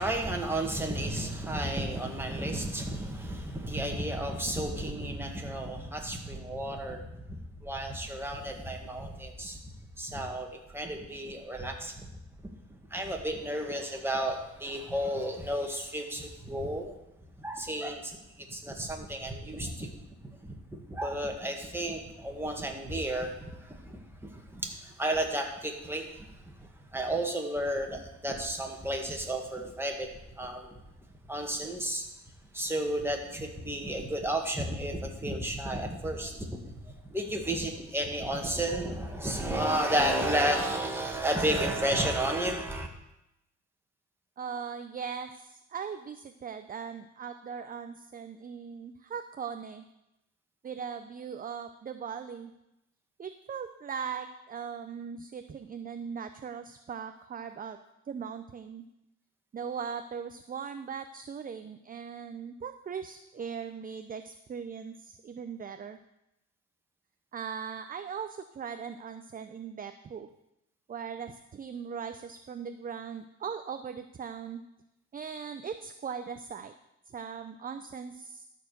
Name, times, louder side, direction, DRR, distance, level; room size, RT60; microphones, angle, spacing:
voice 1, 0.0-7.0 7.3-9.6 10.0-12.1 12.4-12.5 12.9-16.9 17.4-19.9 20.4-26.3 26.9-30.1 30.4-30.8 31.3-32.0 32.5-42.9, right 1 dB, 10° right, 1 dB, 1.8 m, -32 dB
voice 2, 44.4-49.9 50.6-52.5 53.2-57.8 58.1-58.8 59.5-66.0 67.3-70.3 70.9-74.6 75.1-76.7 77.1-78.4, right 7 dB, 30° right, 9 dB, 0.5 m, -39 dB
12.5 x 4.6 x 6.7 m, 0.88 s
cardioid pair, 90°, 30 cm